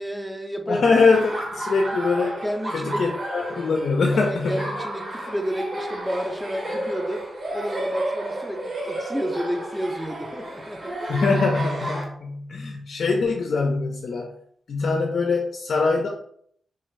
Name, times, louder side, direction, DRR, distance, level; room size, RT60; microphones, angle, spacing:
voice 1, 0.0-0.8 2.4-3.0 4.1-7.3 7.5-11.0, equal, 5° right, 4 dB, 0.4 m, -30 dB
voice 2, 0.7-2.4 2.7-4.6 11.1-14.3 14.7-16.1, left 4 dB, 70° left, 1 dB, 0.3 m, -23 dB
Laughter, 1.1-12.0, right 1 dB, 50° right, 0.8 m, -32 dB
2.5 x 2.3 x 3.1 m, 0.66 s
cardioid pair, 70°, 0 cm